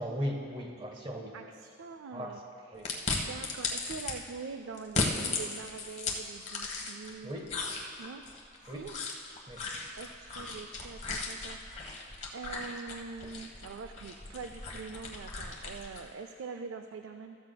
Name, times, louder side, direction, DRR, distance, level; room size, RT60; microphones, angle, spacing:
voice 1, 0.0-1.4 2.1-2.4 2.7-2.9 7.2-7.5 8.7-8.9 9.5-9.6, equal, 25° right, 2 dB, 1.1 m, -37 dB
voice 2, 1.3-2.4 2.7-2.9 3.3-7.3 8.0-8.3 8.7-9.0 10.0-12.0 12.3-17.4, right 5 dB, 85° right, 7 dB, 0.4 m, -44 dB
sound 1, 2.8-4.1 4.8-7.1 7.5-16.1, left 3 dB, 35° left, 1.1 m, -36 dB
15.0 x 13.0 x 2.2 m, 2.3 s
head